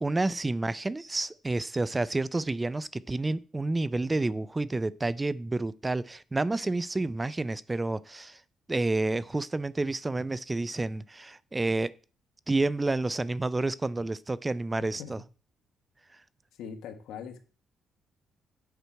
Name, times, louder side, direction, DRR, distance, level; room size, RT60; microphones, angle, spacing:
voice 1, 0.0-8.4 8.7-11.9 12.5-15.2, right 2 dB, 20° right, 0.4 m, -29 dB
voice 2, 16.6-17.4, left 7 dB, 85° left, 1.1 m, -41 dB
8.2 x 6.0 x 4.5 m
cardioid pair, 90°, 0 cm